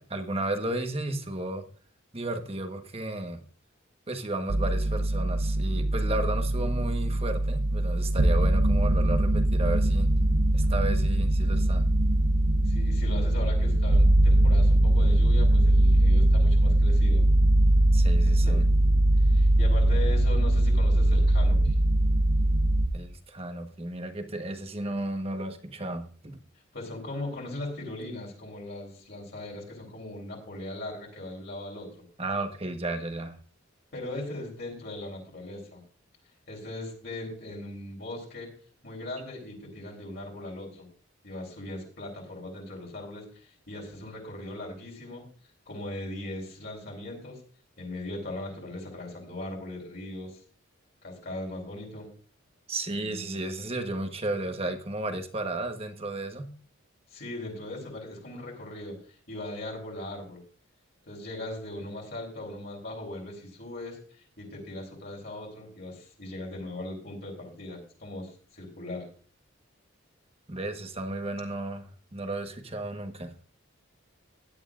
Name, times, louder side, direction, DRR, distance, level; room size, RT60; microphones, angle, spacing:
voice 1, 0.1-1.6 2.1-3.4 4.1-10.1 10.5-11.8 17.9-18.6 22.9-26.4 32.2-33.4 52.7-56.5 70.5-73.3, right 2 dB, 30° right, 1.2 m, -33 dB
sound 1, 4.5-22.9, right 1 dB, 75° right, 0.9 m, -22 dB
voice 2, 12.6-17.2 18.2-18.6 19.2-21.8 26.7-31.9 33.9-35.8 36.5-38.5 38.8-40.9 41.2-45.2 45.7-47.4 47.8-50.4 51.0-52.1 57.1-59.0 59.3-60.4 61.1-64.0 64.4-69.1, left 1 dB, 50° left, 4.0 m, -39 dB
16.5 x 11.0 x 2.5 m
head